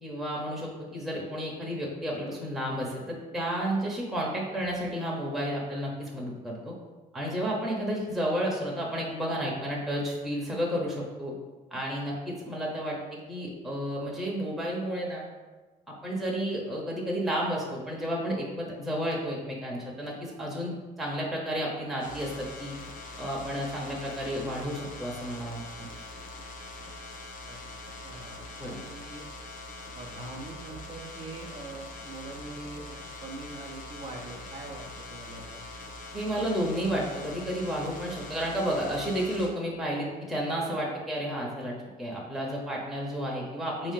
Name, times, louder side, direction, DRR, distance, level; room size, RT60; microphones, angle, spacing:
voice 1, 0.0-6.7 7.1-11.3 11.7-15.3 15.9-22.8 23.2-25.9 28.6-28.8 36.1-43.9, equal, ahead, -4 dB, 0.8 m, -32 dB
sound 1, 22.0-39.5, left 2 dB, 50° left, 0.7 m, -43 dB
voice 2, 28.0-29.3 29.9-35.8, right 2 dB, 35° right, 0 dB, 0.6 m, -43 dB
4.3 x 2.7 x 3.7 m, 1.3 s
cardioid pair, 110°, 17 cm